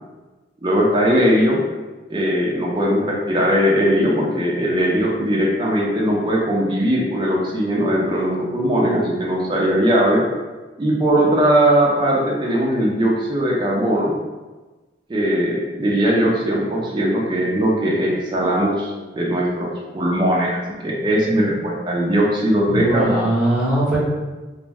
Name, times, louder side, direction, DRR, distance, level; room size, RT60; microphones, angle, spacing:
voice 1, 0.6-1.6 2.1-10.3 10.8-14.1 15.1-23.3, equal, 25° right, -2 dB, 0.4 m, -19 dB
voice 2, 22.7-24.0, right 1 dB, 5° right, -8 dB, 0.7 m, -20 dB
2.4 x 2.1 x 3.3 m, 1.2 s
head